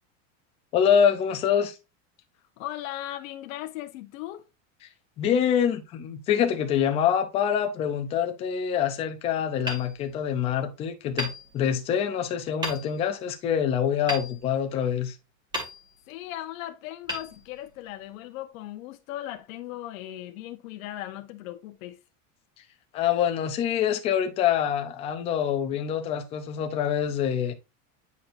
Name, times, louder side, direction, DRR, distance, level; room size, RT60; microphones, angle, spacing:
voice 1, 0.7-1.7 5.2-15.2 22.9-27.5, left 8 dB, 15° left, 0.4 m, -25 dB
voice 2, 2.6-4.5 16.1-22.0, left 14 dB, 80° left, 0.9 m, -38 dB
Hammer, 9.7-10.6 11.1-12.1 12.6-13.2 14.1-15.0 15.5-16.3 17.0-18.0, equal, 10° right, 1.9 m, -36 dB
9.4 x 4.3 x 2.5 m
supercardioid pair, 180°, 40 cm